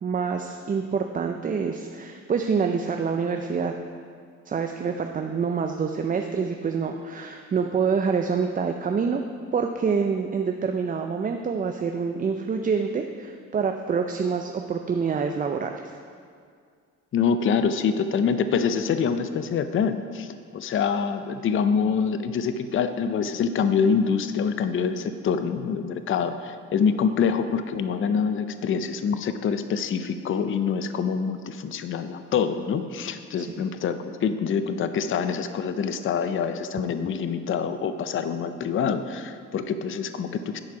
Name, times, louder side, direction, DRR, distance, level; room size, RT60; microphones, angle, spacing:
voice 1, 0.0-3.7 4.5-9.2 9.5-15.7 33.4-33.5, right 5 dB, 30° right, 4 dB, 0.4 m, -26 dB
voice 2, 17.1-40.6, left 6 dB, 45° left, 10 dB, 0.5 m, -25 dB
10.5 x 4.7 x 4.8 m, 2.1 s
cardioid pair, 90°, 30 cm